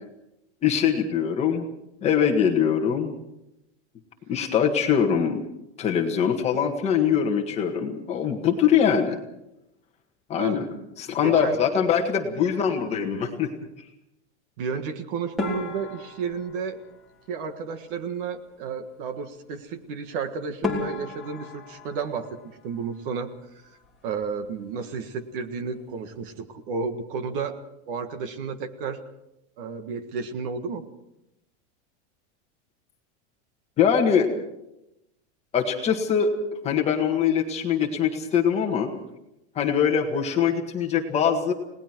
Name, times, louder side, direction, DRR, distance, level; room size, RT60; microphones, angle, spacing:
voice 1, 0.6-1.6 2.0-3.1 4.3-5.4 5.8-9.2 10.3-10.7 11.0-13.5 33.8-34.3 35.5-36.3 36.6-38.9 39.6-41.5, left 7 dB, 20° left, 2 dB, 1.8 m, -22 dB
voice 2, 10.3-10.7 11.2-11.6 14.6-16.8 17.3-22.3 22.6-23.3 24.0-27.6 27.9-29.0 29.6-30.8, right 5 dB, 45° right, 9 dB, 1.7 m, -32 dB
sound 1, 15.4-17.8 20.1-20.2 20.6-23.4 23.7-24.4 24.7-24.9 25.2-25.3 26.0-26.3, left 3 dB, ahead, 3.5 m, -35 dB
29.5 x 19.0 x 4.6 m, 0.86 s
supercardioid pair, 180°, 36 cm